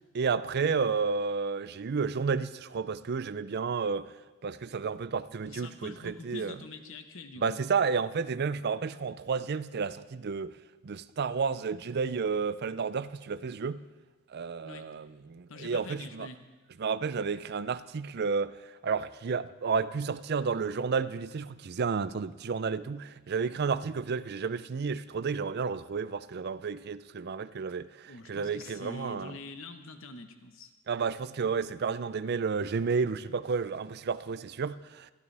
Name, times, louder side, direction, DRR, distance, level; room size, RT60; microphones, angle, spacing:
voice 1, 0.1-4.1 4.4-6.6 7.4-10.5 10.8-13.8 14.3-16.3 16.8-18.5 18.8-29.4 30.9-35.1, right 5 dB, 50° right, 0.4 m, -31 dB
voice 2, 5.4-7.6 14.6-14.8 15.5-16.4 28.1-30.7, left 3 dB, 65° left, 1.1 m, -45 dB
21.5 x 14.0 x 3.4 m
head